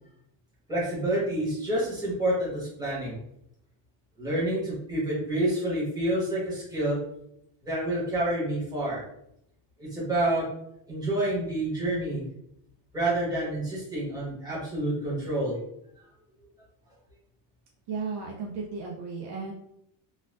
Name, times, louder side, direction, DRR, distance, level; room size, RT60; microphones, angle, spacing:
voice 1, 0.7-3.1 4.2-7.0 7.6-9.0 9.8-10.5 10.9-12.2 12.9-15.6, right 1 dB, 10° right, -7 dB, 1.3 m, -28 dB
voice 2, 17.9-19.5, right 4 dB, 55° right, 0 dB, 0.6 m, -34 dB
4.1 x 2.3 x 2.5 m, 0.76 s
cardioid pair, 150°, 49 cm